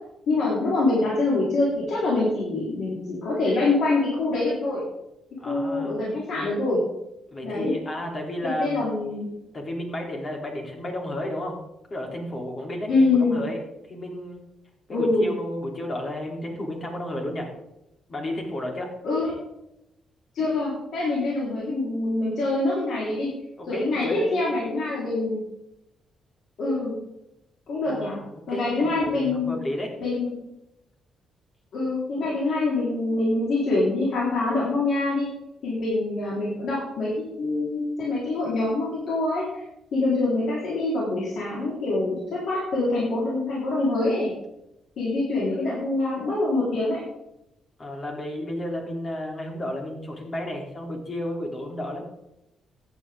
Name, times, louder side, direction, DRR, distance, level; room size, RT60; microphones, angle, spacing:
voice 1, 0.3-4.8 5.5-6.8 7.4-7.7 8.4-9.3 12.9-13.4 14.9-15.3 19.0-19.3 20.3-23.3 23.7-25.4 26.6-27.0 27.7-28.2 28.5-29.5 30.0-30.3 31.7-35.3 35.6-39.6 39.9-44.3 45.0-47.0, left 2 dB, 65° left, -6 dB, 4.2 m, -25 dB
voice 2, 5.4-6.2 7.3-8.9 9.5-11.6 11.9-12.9 13.2-13.6 13.9-14.4 14.9-17.5 18.1-18.9 23.6-24.4 27.9-29.9 47.8-52.0, left 1 dB, 35° left, 1 dB, 3.4 m, -32 dB
14.5 x 10.0 x 3.8 m, 0.86 s
cardioid pair, 115°, 0 cm